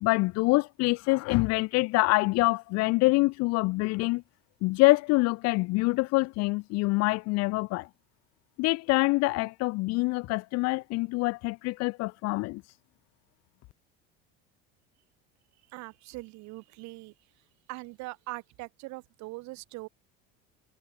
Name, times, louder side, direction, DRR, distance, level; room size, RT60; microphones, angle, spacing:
voice 1, 0.0-4.2 4.6-7.9 8.6-12.6, left 23 dB, 60° left, 0.5 m, -25 dB
voice 2, 15.7-17.1 17.7-19.9, right 23 dB, 65° right, 3.4 m, -41 dB
supercardioid pair, 105°, 30 cm